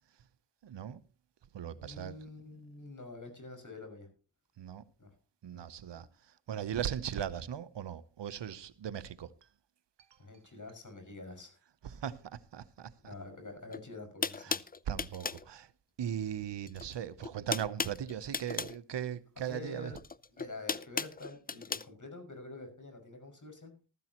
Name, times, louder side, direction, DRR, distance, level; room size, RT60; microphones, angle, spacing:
voice 1, 0.6-1.0 1.5-2.2 4.6-4.8 5.4-6.1 6.5-9.3 11.8-13.1 14.4-14.6 14.9-15.7 16.0-19.9, right 9 dB, 85° right, 0.8 m, -38 dB
voice 2, 1.7-4.1 5.0-5.1 5.5-5.7 5.9-6.0 10.2-11.6 13.0-14.6 19.4-20.0 20.4-23.7, left 2 dB, 45° left, 5.8 m, -47 dB
sound 1, 13.7-13.8 14.2-15.5 16.6-17.0 17.2-18.8 19.9-21.9, left 4 dB, 20° left, 0.5 m, -36 dB
15.0 x 13.5 x 2.9 m
cardioid pair, 45°, 41 cm